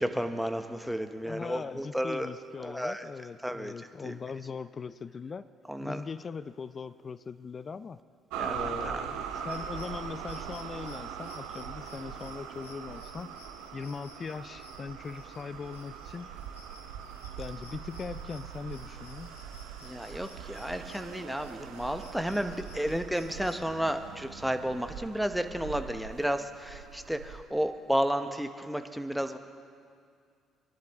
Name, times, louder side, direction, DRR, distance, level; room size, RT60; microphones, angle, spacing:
voice 1, 0.0-2.3 2.6-3.0 3.4-3.7 4.0-4.1 5.7-6.0 8.4-9.0 19.8-29.4, equal, 5° right, 8 dB, 1.0 m, -32 dB
voice 2, 1.2-5.4 5.8-8.0 8.5-13.4 13.7-16.3 17.4-19.4, left 5 dB, 40° left, 15 dB, 0.5 m, -40 dB
sound 1, 8.3-27.4, right 8 dB, 75° right, 0.8 m, -42 dB
sound 2, 9.3-23.6, left 3 dB, 90° left, 1.9 m, -55 dB
23.0 x 11.5 x 3.5 m, 2.2 s
hypercardioid pair, 50°, 0 cm